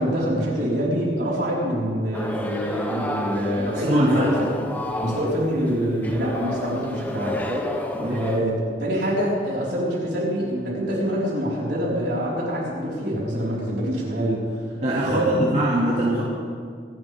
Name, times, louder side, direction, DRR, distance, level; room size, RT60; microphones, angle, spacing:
voice 1, 0.0-4.5 4.9-7.4 8.1-14.4 15.0-15.6, equal, 65° right, -6 dB, 4.6 m, -25 dB
sound 1, 2.1-8.4, left 1 dB, 10° left, 1.0 m, -30 dB
voice 2, 3.6-4.6 7.3-7.6 7.9-8.2 14.8-16.2, right 1 dB, 40° right, -8 dB, 2.4 m, -23 dB
26.0 x 11.0 x 3.6 m, 2.2 s
head